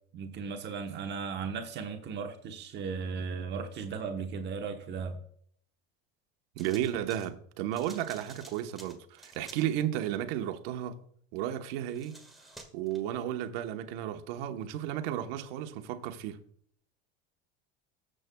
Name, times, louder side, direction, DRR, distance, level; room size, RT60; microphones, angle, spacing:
voice 1, 0.1-5.2, right 5 dB, 35° right, 1.1 m, -36 dB
sound 1, 6.6-7.3 7.7-9.7 11.8-13.0, right 1 dB, ahead, 1.6 m, -51 dB
voice 2, 6.6-11.0 11.3-12.2 12.7-16.4, right 11 dB, 65° right, 1.2 m, -33 dB
19.5 x 7.6 x 2.3 m
supercardioid pair, 145°, 31 cm